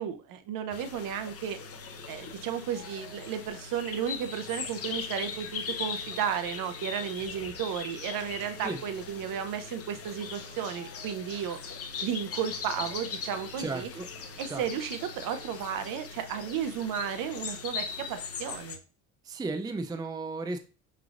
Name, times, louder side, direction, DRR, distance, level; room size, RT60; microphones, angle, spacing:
voice 1, 0.0-1.6 2.1-11.6 12.0-13.9 14.4-18.8, right 8 dB, 60° right, 9 dB, 0.8 m, -33 dB
sound 1, 0.7-18.8, left 6 dB, 40° left, 0.8 m, -40 dB
sound 2, 1.5-15.9, right 1 dB, 35° right, 1.2 m, -54 dB
voice 2, 13.6-14.1 14.5-14.6 19.3-20.6, right 3 dB, 10° right, 6 dB, 0.5 m, -34 dB
6.0 x 3.2 x 2.5 m, 0.35 s
supercardioid pair, 95°, 38 cm